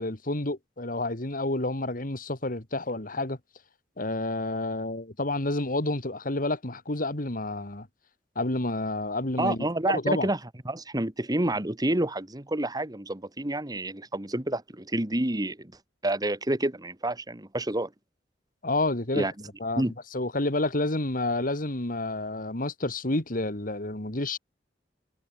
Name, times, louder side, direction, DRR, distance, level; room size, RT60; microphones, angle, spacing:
voice 1, 0.0-3.4 4.0-7.9 8.4-10.3 18.6-19.3 19.6-19.8 20.1-24.4, left 2 dB, 50° left, 2.6 m, -29 dB
voice 2, 9.4-10.4 10.7-15.7 16.0-17.9 19.1-19.3 19.8-19.9, right 1 dB, 20° right, 1.8 m, -28 dB
head